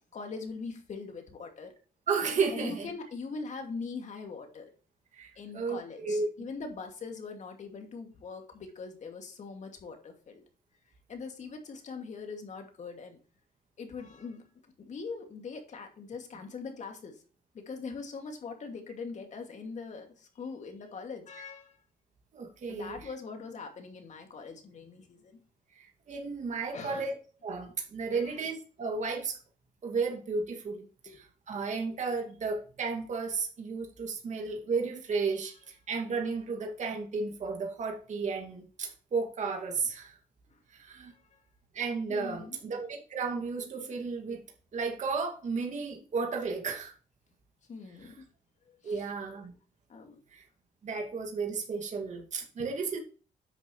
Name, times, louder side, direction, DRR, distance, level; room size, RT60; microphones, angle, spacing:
voice 1, 0.1-1.7 2.5-4.7 5.4-10.4 11.1-13.2 13.8-17.2 17.5-21.7 22.7-25.4 26.7-27.1 28.1-28.4 31.1-31.2 31.5-31.6 40.5-40.6 41.0-41.4 42.1-42.6 47.7-48.3 48.7-49.1 49.9-50.2, left 4 dB, 50° left, 4 dB, 2.4 m, -42 dB
voice 2, 2.1-2.9 5.1-6.3 22.3-23.0 25.7-27.2 27.4-29.4 29.8-40.2 40.7-41.1 41.7-44.4 44.7-46.9 48.8-49.5 50.3-50.4 50.8-53.0, right 4 dB, 50° right, 1 dB, 2.4 m, -33 dB
10.0 x 6.3 x 3.2 m, 0.38 s
cardioid pair, 95°, 15 cm